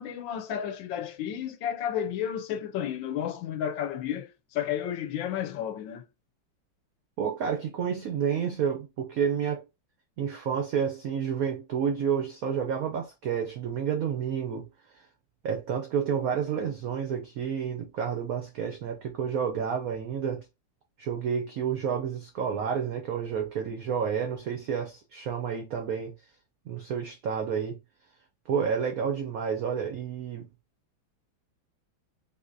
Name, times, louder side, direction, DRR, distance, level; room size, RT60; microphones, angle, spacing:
voice 1, 0.0-6.0, left 9 dB, 75° left, 1.2 m, -32 dB
voice 2, 7.2-9.6 10.2-14.7 14.9-15.1 15.4-20.5 21.0-26.1 26.7-27.8 28.5-30.5, right 7 dB, 80° right, 0.8 m, -30 dB
3.9 x 2.7 x 2.5 m
omnidirectional pair, 2.2 m